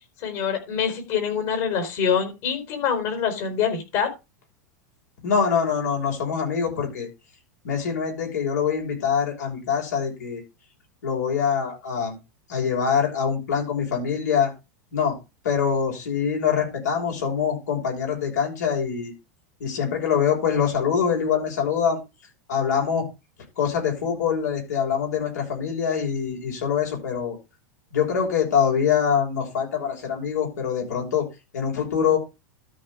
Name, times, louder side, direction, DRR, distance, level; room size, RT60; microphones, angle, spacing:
voice 1, 0.2-4.1, left 7 dB, 55° left, 7 dB, 4.4 m, -25 dB
voice 2, 5.2-7.1 7.6-10.4 11.0-12.2 12.5-14.5 14.9-15.2 15.4-19.1 19.6-22.0 22.5-23.0 23.6-27.4 27.9-31.2 31.5-32.2, left 7 dB, 80° left, 0 dB, 6.0 m, -24 dB
13.0 x 4.7 x 5.0 m, 0.26 s
hypercardioid pair, 105°, 9 cm